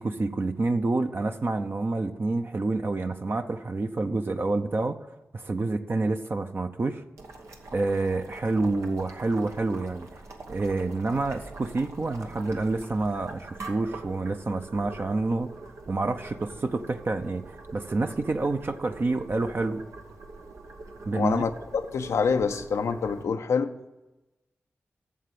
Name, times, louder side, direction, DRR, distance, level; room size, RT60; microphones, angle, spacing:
voice 1, 0.0-5.0 5.3-7.0 7.7-10.1 10.5-15.5 15.9-19.8 21.1-21.4, right 3 dB, 50° right, 6 dB, 0.7 m, -28 dB
Boiling, 7.2-23.2, right 3 dB, 90° right, 1.1 m, -44 dB
voice 2, 21.1-23.7, left 5 dB, 90° left, 8 dB, 0.6 m, -26 dB
8.4 x 6.8 x 7.6 m, 1.0 s
cardioid pair, 45°, 5 cm